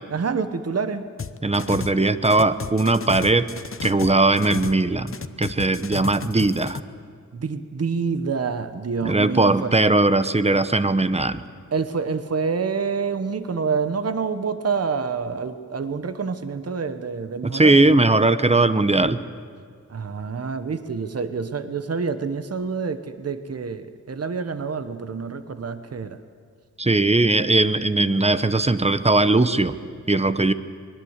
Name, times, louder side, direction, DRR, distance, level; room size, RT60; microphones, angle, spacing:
voice 1, 0.1-1.1 7.3-9.8 11.7-18.0 19.9-26.2, right 5 dB, 50° right, 11 dB, 1.0 m, -27 dB
sound 1, 1.2-4.8 5.1-6.8, left 5 dB, 45° left, 0.9 m, -33 dB
voice 2, 1.4-3.5 3.8-5.1 5.4-6.8 9.0-11.4 17.4-19.2 26.8-29.7 30.1-30.5, right 2 dB, 20° right, 12 dB, 0.9 m, -19 dB
24.0 x 20.5 x 8.1 m, 2.2 s
wide cardioid pair, 95°, 30 cm